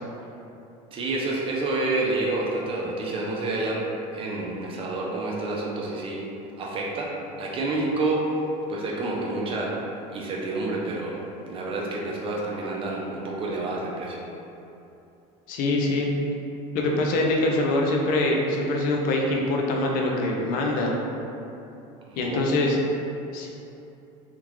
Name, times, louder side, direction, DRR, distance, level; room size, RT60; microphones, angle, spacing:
voice 1, 0.9-3.8 4.1-6.2 6.6-7.1 7.4-8.3 8.7-9.7 10.1-14.2 22.1-22.4, right 2 dB, 35° right, -2 dB, 0.5 m, -28 dB
voice 2, 15.5-16.1 16.7-20.9 22.2-22.8 23.3-23.5, left 2 dB, 60° left, 0 dB, 0.5 m, -24 dB
3.6 x 2.3 x 3.0 m, 2.8 s
supercardioid pair, 130°, 17 cm